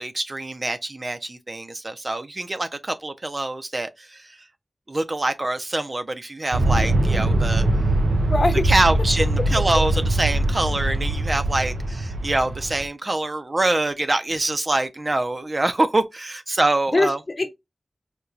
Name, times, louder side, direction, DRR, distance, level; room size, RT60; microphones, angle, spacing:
voice 1, 0.0-4.5 4.9-7.7 8.6-17.2, right 2 dB, 45° right, 0.6 m, -25 dB
Aircraft, 6.5-12.9, right 1 dB, 90° right, 0.5 m, -22 dB
voice 2, 8.3-8.7 9.5-9.8 16.9-17.5, left 2 dB, 50° left, 0.9 m, -22 dB
4.4 x 2.3 x 2.5 m
wide cardioid pair, 70°, 0 cm